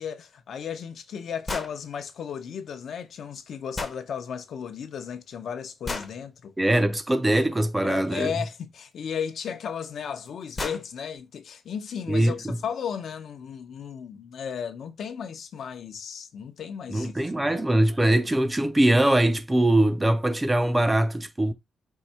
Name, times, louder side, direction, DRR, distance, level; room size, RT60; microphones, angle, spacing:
voice 1, 0.0-6.5 7.8-17.6 18.1-18.2, left 7 dB, 60° left, 0.7 m, -35 dB
sound 1, 1.5-1.7 3.7-4.0 5.8-6.1 8.4-8.5 9.8-9.9 10.3-10.4 10.6-10.9, left 3 dB, 25° left, 0.7 m, -32 dB
voice 2, 6.6-8.3 12.1-12.5 16.9-21.5, right 1 dB, 10° right, 0.4 m, -22 dB
4.7 x 2.7 x 4.2 m
wide cardioid pair, 160°, 0 cm